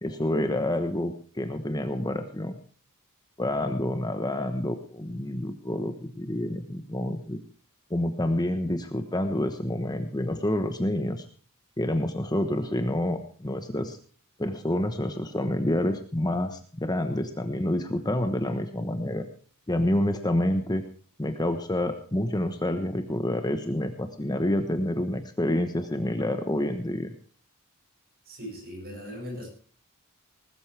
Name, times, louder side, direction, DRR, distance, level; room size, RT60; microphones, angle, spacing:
voice 1, 0.0-2.6 3.4-7.4 7.9-11.2 11.8-14.0 14.4-19.3 19.7-20.8 21.2-27.1, left 1 dB, 20° left, 7 dB, 1.1 m, -28 dB
voice 2, 28.3-29.5, equal, 45° right, 1 dB, 7.9 m, -39 dB
20.0 x 13.5 x 3.4 m, 0.42 s
head